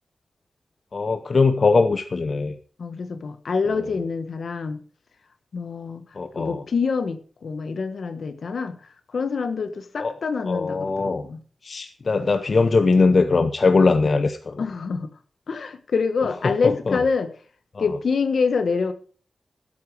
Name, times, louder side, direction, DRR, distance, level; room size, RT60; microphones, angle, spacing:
voice 1, 0.9-2.5 6.1-6.6 10.0-10.1 10.5-11.3 11.6-14.6 16.4-17.0 17.7-17.8, left 4 dB, 45° left, 8 dB, 0.7 m, -21 dB
voice 2, 2.8-4.8 5.5-6.1 6.4-8.8 9.1-11.4 14.6-15.1 15.5-17.3 17.8-18.9, left 5 dB, 70° left, 10 dB, 1.2 m, -26 dB
15.0 x 8.6 x 4.7 m, 0.42 s
wide cardioid pair, 155°, 0 cm